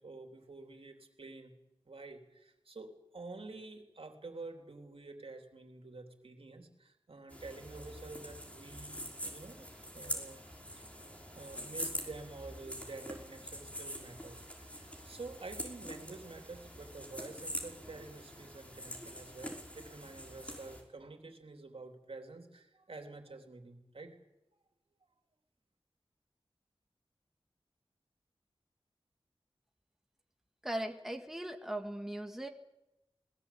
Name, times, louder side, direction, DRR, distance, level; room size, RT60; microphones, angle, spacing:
voice 1, 0.0-1.5 1.8-9.7 9.9-10.4 10.8-24.2, right 3 dB, 70° right, 4 dB, 3.3 m, -49 dB
sound 1, 7.3-20.8, equal, 15° left, 5.5 m, -45 dB
voice 2, 30.6-32.5, right 1 dB, 5° right, 4 dB, 1.8 m, -39 dB
20.5 x 20.0 x 8.6 m, 0.94 s
wide cardioid pair, 70°, 10 cm